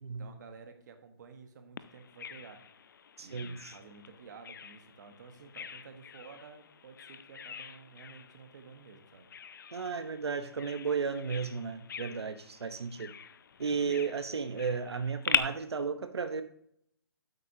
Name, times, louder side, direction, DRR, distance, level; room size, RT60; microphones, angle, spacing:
voice 1, 0.2-2.7 3.2-9.3, right 5 dB, 45° right, 6 dB, 1.4 m, -52 dB
Bird vocalization bird call bird song, 1.8-15.4, left 8 dB, 50° left, 0.5 m, -41 dB
voice 2, 3.2-3.7 9.7-13.1 13.6-16.4, right 5 dB, 85° right, 9 dB, 1.0 m, -34 dB
9.7 x 8.1 x 2.8 m, 0.69 s
hypercardioid pair, 160°, 13 cm